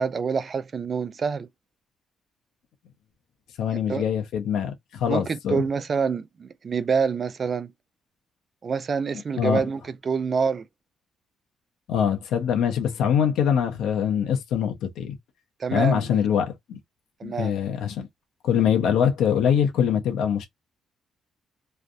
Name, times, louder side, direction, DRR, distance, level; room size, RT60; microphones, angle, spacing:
voice 1, 0.0-1.5 3.9-4.0 5.1-7.7 8.6-10.7 15.6-16.2 17.2-17.5, right 5 dB, 45° right, 0.4 m, -26 dB
voice 2, 3.6-5.6 9.4-9.6 11.9-15.1 15.7-16.8 17.2-18.1 18.4-20.5, left 8 dB, 80° left, 1.0 m, -23 dB
3.2 x 2.2 x 2.6 m
cardioid pair, 90°, 0 cm